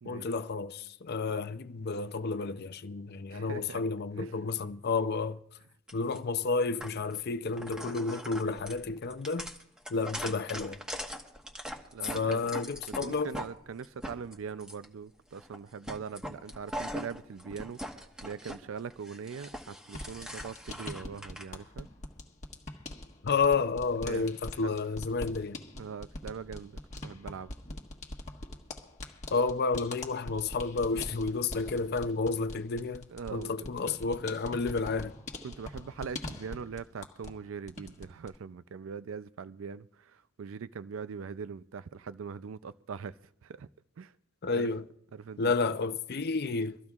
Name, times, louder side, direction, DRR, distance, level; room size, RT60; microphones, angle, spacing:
voice 1, 0.1-5.4 5.9-9.5 9.9-10.8 12.1-13.3 23.2-25.6 29.3-35.1 44.4-44.9 45.4-46.8, left 4 dB, 50° left, 0.5 m, -31 dB
voice 2, 3.3-3.8 4.2-4.3 8.4-8.6 11.9-12.5 13.0-17.8 18.2-21.9 24.0-24.3 24.6-24.7 25.8-27.5 33.1-33.5 35.4-43.1 43.4-43.7 44.0-44.1 44.5-44.7 45.1-45.8, right 6 dB, 70° right, 0.4 m, -41 dB
sound 1, 5.9-6.2 6.8-7.2 7.5-13.5 13.8-14.9 15.3-15.6 15.8-18.6 18.9-21.4, equal, 5° right, 1.3 m, -41 dB
sound 2, 19.9-37.4 37.7-38.4, left 2 dB, 35° left, 1.4 m, -43 dB
24.5 x 14.0 x 2.4 m
head